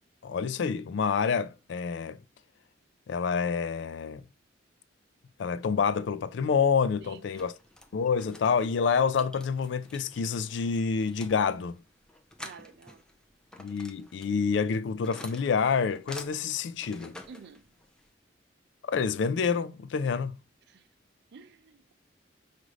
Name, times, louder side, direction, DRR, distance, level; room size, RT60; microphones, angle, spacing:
voice 1, 0.2-2.2 3.1-4.2 5.4-7.5 7.9-11.8 13.6-17.2 18.8-20.4, left 6 dB, 70° left, 0.4 m, -28 dB
voice 2, 7.0-7.4 12.4-13.0 17.3-17.7 20.7-20.9 21.3-21.9, right 5 dB, 65° right, 0.4 m, -50 dB
sound 1, 7.1-18.1, left 1 dB, 5° left, 0.6 m, -50 dB
4.9 x 2.6 x 3.1 m
head